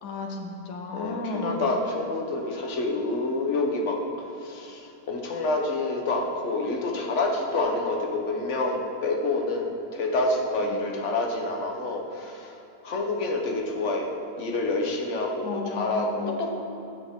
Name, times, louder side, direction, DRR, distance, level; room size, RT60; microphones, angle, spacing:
voice 1, 0.0-1.6 10.7-10.8 15.4-16.2, left 3 dB, 85° left, 1 dB, 1.5 m, -34 dB
voice 2, 0.9-12.6 12.8-14.1 14.4-16.5, left 2 dB, 50° left, 1 dB, 1.3 m, -28 dB
13.5 x 6.8 x 3.6 m, 2.8 s
omnidirectional pair, 1.7 m